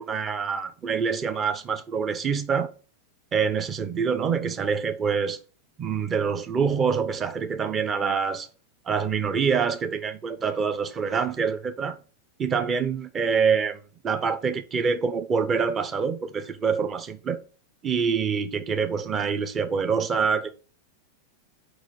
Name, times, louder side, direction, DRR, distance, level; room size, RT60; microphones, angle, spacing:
voice 1, 0.0-2.7 3.3-5.4 5.8-8.5 8.8-12.0 12.4-17.4 17.8-20.5, right 6 dB, 25° right, 0.9 m, -26 dB
6.5 x 5.3 x 5.1 m
figure-of-eight pair, 90°, 0 cm